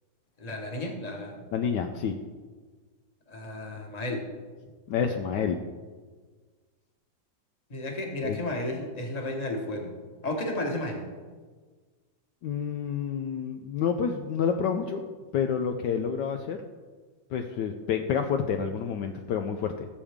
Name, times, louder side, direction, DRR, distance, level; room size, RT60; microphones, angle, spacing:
voice 1, 0.4-1.4 3.3-4.2 7.7-9.9 10.2-11.0, left 1 dB, 20° left, 1 dB, 1.4 m, -33 dB
voice 2, 1.5-2.2 4.9-5.6 8.2-8.4 12.4-15.0 15.3-16.6 17.3-19.9, left 7 dB, 70° left, 6 dB, 1.2 m, -28 dB
16.0 x 7.1 x 3.6 m, 1.5 s
omnidirectional pair, 2.1 m